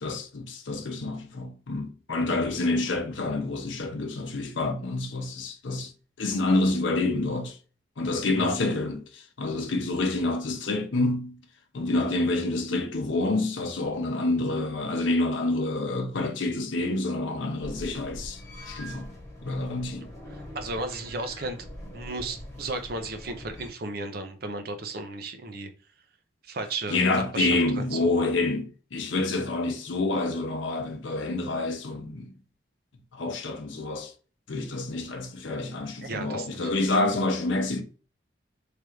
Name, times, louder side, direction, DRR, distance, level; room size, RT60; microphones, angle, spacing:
voice 1, 0.0-5.9 6.2-7.6 8.0-11.4 11.7-18.4 18.7-19.1 19.4-20.1 26.9-32.3 33.1-34.1 34.5-37.8, left 2 dB, 75° left, 0.7 m, -28 dB
sound 1, 17.6-23.7, equal, 15° left, 1.2 m, -43 dB
voice 2, 20.3-21.6 21.9-25.7 26.4-27.0 27.3-27.5 27.8-28.1 36.0-36.7, right 3 dB, 50° right, 0.6 m, -34 dB
3.3 x 2.5 x 4.4 m
head